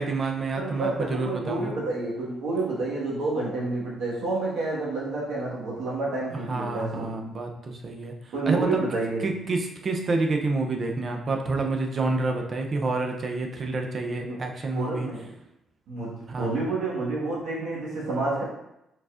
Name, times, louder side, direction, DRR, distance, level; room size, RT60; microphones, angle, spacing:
voice 1, 0.0-1.7 6.5-8.1 8.5-8.8 9.2-15.1 16.3-16.5, right 3 dB, 45° right, 3 dB, 0.6 m, -28 dB
voice 2, 0.5-7.1 8.3-9.3 14.3-14.4 14.7-15.3 15.9-18.4, right 2 dB, 75° right, -4 dB, 1.5 m, -29 dB
4.6 x 4.0 x 2.5 m, 0.86 s
cardioid pair, 90°, 0 cm